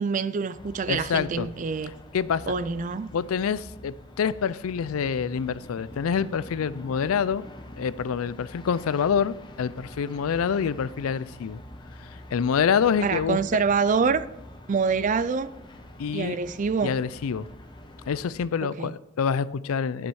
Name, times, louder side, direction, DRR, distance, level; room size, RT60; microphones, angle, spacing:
voice 1, 0.0-1.9 2.5-3.1 13.0-14.3 14.7-15.5 16.1-16.9 18.6-18.9, right 5 dB, 35° right, 0.3 m, -26 dB
sound 1, 0.5-18.3, left 1 dB, 20° left, 0.9 m, -45 dB
voice 2, 0.9-1.5 2.1-2.5 3.1-7.4 7.8-11.6 12.3-13.4 16.0-16.4 16.8-17.5 18.1-20.1, left 7 dB, 80° left, 0.4 m, -26 dB
11.5 x 6.3 x 4.7 m
head